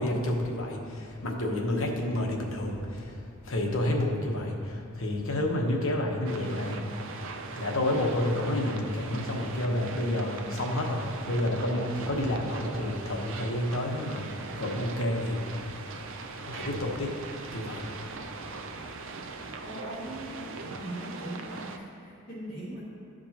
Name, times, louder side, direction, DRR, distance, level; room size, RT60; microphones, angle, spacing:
voice 1, 0.0-3.2 3.4-7.2 7.5-15.5 16.4-17.9 18.4-18.5, left 1 dB, 65° left, 0 dB, 1.1 m, -30 dB
sound 1, 6.3-21.8, right 4 dB, 65° right, 0.6 m, -40 dB
voice 2, 19.6-22.8, right 1 dB, 45° left, -11 dB, 2.0 m, -40 dB
14.5 x 5.1 x 2.9 m, 2.6 s
head